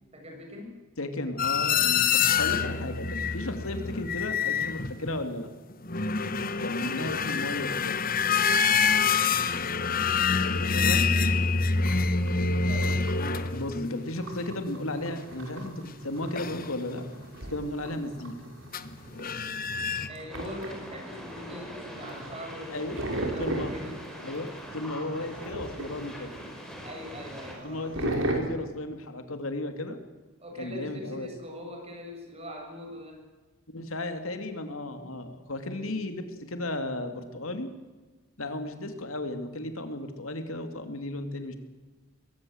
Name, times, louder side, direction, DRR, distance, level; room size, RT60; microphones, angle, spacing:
voice 1, 0.1-0.8 6.7-7.0 9.8-11.1 12.5-13.0 20.1-24.0 26.8-28.3 30.4-33.2 35.0-35.1 35.6-35.9, left 1 dB, 30° right, 2 dB, 6.9 m, -42 dB
voice 2, 1.0-5.5 6.6-8.0 10.3-10.4 10.7-11.1 13.5-17.0 17.5-18.3 22.7-23.1 23.4-23.7 24.2-26.3 27.6-30.0 30.6-31.3 33.7-37.7 38.4-41.6, left 1 dB, 90° left, 7 dB, 2.8 m, -34 dB
sound 1, 1.4-5.3 5.7-14.4 16.4-16.7 18.7-18.9 19.1-20.1, left 5 dB, 45° left, 1.2 m, -26 dB
sound 2, 11.8-28.3, right 1 dB, 70° right, 5.5 m, -39 dB
sound 3, 20.3-27.5, equal, 5° left, 5.2 m, -43 dB
22.0 x 18.0 x 8.0 m, 1.3 s
head